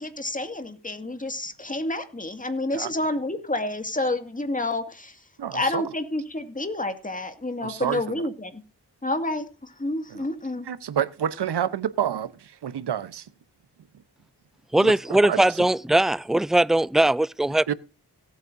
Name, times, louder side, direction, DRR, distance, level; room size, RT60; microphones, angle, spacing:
voice 1, 0.0-5.2 5.5-8.6 9.0-10.7, left 2 dB, 20° left, 2.2 m, -29 dB
voice 2, 5.4-5.8 7.6-8.2 10.1-10.2 10.7-13.3 14.8-14.9 15.2-15.6 17.7-17.8, right 9 dB, 75° right, 1.0 m, -28 dB
voice 3, 14.7-17.7, right 1 dB, ahead, 0.4 m, -20 dB
17.5 x 8.7 x 2.7 m
cardioid pair, 60°, 41 cm